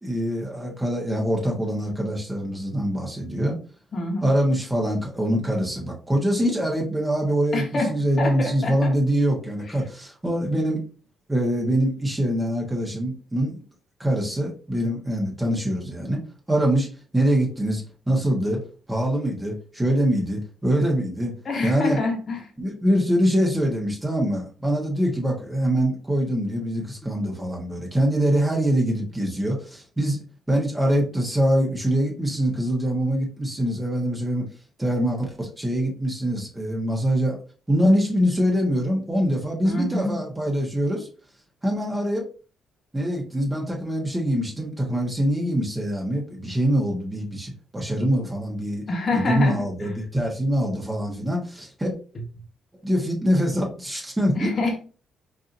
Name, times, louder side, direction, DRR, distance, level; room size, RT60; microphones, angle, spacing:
voice 1, 0.0-3.6 4.2-10.9 11.3-13.6 14.0-16.2 16.5-18.6 18.9-21.3 21.6-22.0 22.6-30.2 30.5-34.4 34.8-37.4 37.7-41.1 41.6-42.3 42.9-48.8 49.1-51.9 52.8-54.5, equal, 10° right, -2 dB, 1.3 m, -24 dB
voice 2, 3.9-4.3 7.5-8.9 21.4-22.4 39.6-40.2 48.9-49.9 54.4-54.8, left 2 dB, 45° left, 2 dB, 1.1 m, -26 dB
4.7 x 2.8 x 2.6 m, 0.37 s
cardioid pair, 90°, 0 cm